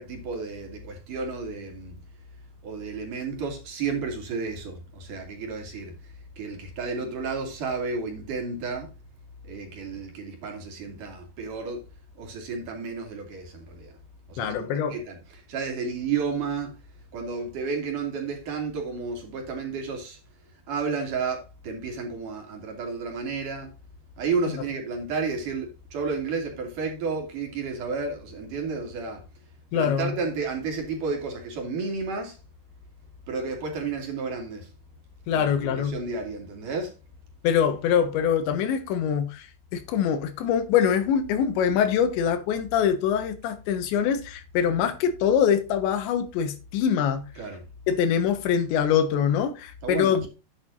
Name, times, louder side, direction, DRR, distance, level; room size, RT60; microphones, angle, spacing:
voice 1, 0.0-2.0 2.6-8.9 9.5-11.8 12.2-13.9 14.3-14.6 14.9-16.8 17.1-20.2 20.7-23.7 24.2-29.2 29.7-32.4 33.3-34.7 35.3-36.9 47.4-47.6 49.8-50.3, right 4 dB, 50° right, 3.9 m, -32 dB
voice 2, 14.4-15.0 29.7-30.1 35.3-35.9 37.4-39.5 39.7-47.2 47.9-50.3, left 8 dB, 90° left, 3.6 m, -24 dB
10.0 x 9.2 x 2.7 m
omnidirectional pair, 5.1 m